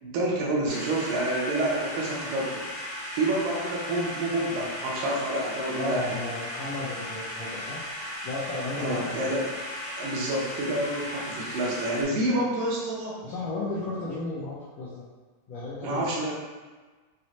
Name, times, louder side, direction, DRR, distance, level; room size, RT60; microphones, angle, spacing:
voice 1, 0.0-2.6 3.1-6.2 8.8-9.5 10.0-13.2 15.8-16.3, right 1 dB, 80° right, -4 dB, 2.3 m, -28 dB
sound 1, 0.7-12.0, left 1 dB, 60° left, 1.4 m, -36 dB
voice 2, 5.7-7.8 8.2-9.3 13.2-15.0 15.5-16.1, left 2 dB, 85° left, -8 dB, 1.5 m, -34 dB
6.0 x 2.1 x 2.8 m, 1.3 s
omnidirectional pair, 3.8 m